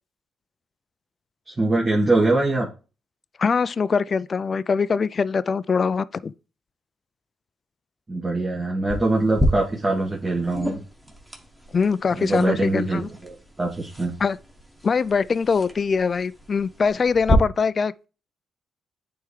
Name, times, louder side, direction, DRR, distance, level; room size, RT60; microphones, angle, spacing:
voice 1, 1.5-2.7 8.1-10.8 12.1-14.1, right 2 dB, 30° right, 1.6 m, -23 dB
voice 2, 3.4-6.3 11.7-13.1 14.2-14.4 14.8-18.1, left 5 dB, 45° left, 0.3 m, -23 dB
sound 1, 8.9-17.3, equal, 5° right, 1.5 m, -31 dB
9.0 x 3.5 x 3.2 m
supercardioid pair, 55°, 0 cm